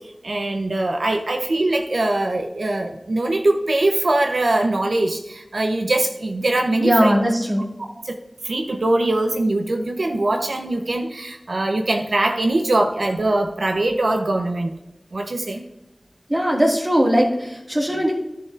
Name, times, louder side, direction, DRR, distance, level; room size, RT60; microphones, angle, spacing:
voice 1, 0.2-7.1 8.0-8.2 8.4-14.7 15.1-15.6, right 2 dB, 90° right, 4 dB, 0.6 m, -22 dB
voice 2, 6.8-7.7 16.3-18.1, equal, 25° right, -1 dB, 1.9 m, -19 dB
12.0 x 6.9 x 2.4 m, 0.93 s
wide cardioid pair, 45°, 0 cm